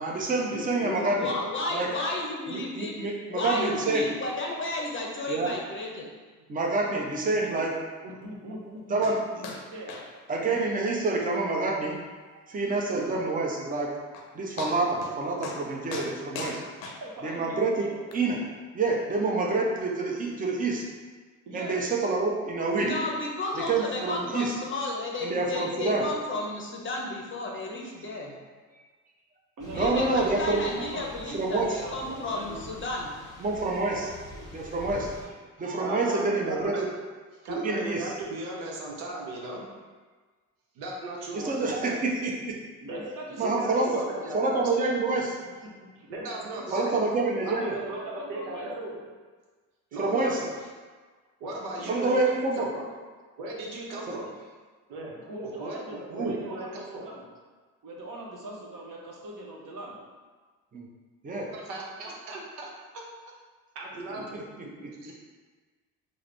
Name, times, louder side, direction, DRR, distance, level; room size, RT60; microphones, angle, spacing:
voice 1, 0.0-1.3 1.7-2.0 2.5-4.1 5.3-5.5 6.5-7.7 8.9-9.2 10.3-12.0 12.5-13.9 14.3-16.6 17.2-17.9 18.1-18.4 18.7-20.9 21.5-22.9 23.5-24.5 25.2-26.0 29.7-30.7 31.3-31.8 33.4-35.1 35.6-36.7 37.5-38.1 41.3-42.6 43.4-44.0 44.3-45.4 46.7-47.8 50.0-50.4 51.9-52.7 54.1-54.2 56.1-56.4 60.7-60.9 61.2-61.5 64.1-64.9, right 3 dB, 20° right, -1 dB, 0.6 m, -27 dB
voice 2, 0.5-3.0 3.3-6.0 22.8-28.4 29.7-33.1, left 2 dB, 30° left, -1 dB, 0.7 m, -33 dB
voice 3, 8.0-10.0 10.4-10.6 12.9-13.2 16.8-18.0 21.5-21.8 28.5-28.6 29.6-32.6 35.8-36.2 42.8-44.3 45.9-46.1 46.4-47.0 47.5-48.7 51.8-51.9 55.2-57.3 57.8-60.0 64.1-64.2, right 1 dB, 50° right, -2 dB, 0.9 m, -41 dB
sound 1, 9.0-9.2 9.4-9.6 9.9-10.1 10.3-10.4 10.9-11.0 11.4-11.5 11.9-12.0 13.7-13.8 14.1-14.3 14.6-15.2 15.4-15.6 15.9-17.4 18.1-18.2, left 4 dB, 70° left, 0.6 m, -38 dB
Thunder / Rain, 29.6-35.3, left 1 dB, 10° left, 0.9 m, -44 dB
voice 4, 35.8-36.8 37.4-39.6 40.7-42.0 42.9-43.0 43.4-44.6 46.1-46.9 47.4-49.0 49.9-50.5 51.4-52.3 52.6-52.8 53.4-54.3 54.9-55.1 55.4-57.0 61.5-62.7 63.7-64.4 65.0-65.1, right 2 dB, 80° right, -2 dB, 0.7 m, -37 dB
3.5 x 2.0 x 3.2 m, 1.4 s
hypercardioid pair, 60°, 42 cm